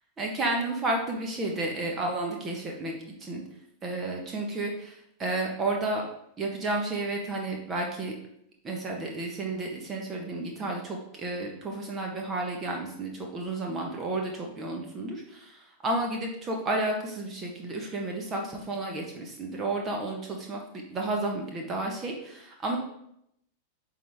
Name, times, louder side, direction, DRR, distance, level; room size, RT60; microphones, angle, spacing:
voice 1, 0.2-2.9 3.2-3.4 3.8-6.0 6.4-8.1 8.6-22.8, right 2 dB, 25° right, 1 dB, 1.3 m, -32 dB
9.1 x 3.9 x 3.6 m, 0.76 s
figure-of-eight pair, 90°, 0 cm